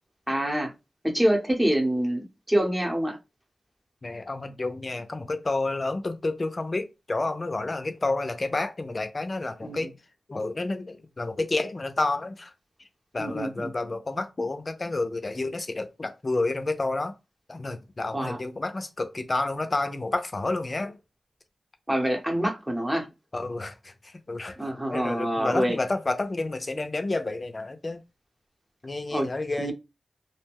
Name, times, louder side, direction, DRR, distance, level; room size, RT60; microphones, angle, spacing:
voice 1, 0.3-0.7 1.0-3.2 9.6-9.9 13.2-13.7 18.1-18.4 21.9-23.1 24.6-25.8 29.1-29.3 29.6-29.7, right 1 dB, 10° right, 0.9 m, -26 dB
voice 2, 4.0-9.9 10.3-12.5 13.1-17.1 17.5-21.0 23.3-23.9 24.3-24.6 24.9-28.0 28.8-29.7, left 2 dB, 40° left, 0.5 m, -30 dB
2.4 x 2.1 x 3.4 m
cardioid pair, 65°, 0 cm